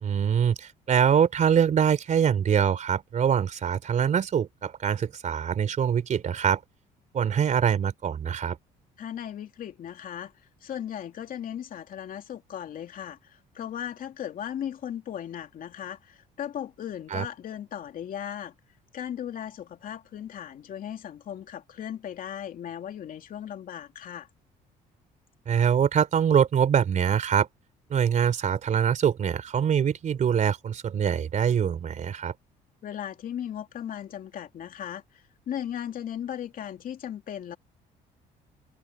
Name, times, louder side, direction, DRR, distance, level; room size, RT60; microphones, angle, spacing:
voice 1, 0.0-6.6 7.1-8.6 17.1-17.3 25.5-27.5 27.9-32.3, right 8 dB, 45° right, 3.6 m, -24 dB
voice 2, 9.0-10.3 10.6-18.5 18.9-24.3 32.8-35.0 35.5-37.6, left 10 dB, 55° left, 2.8 m, -37 dB
cardioid pair, 110°, 17 cm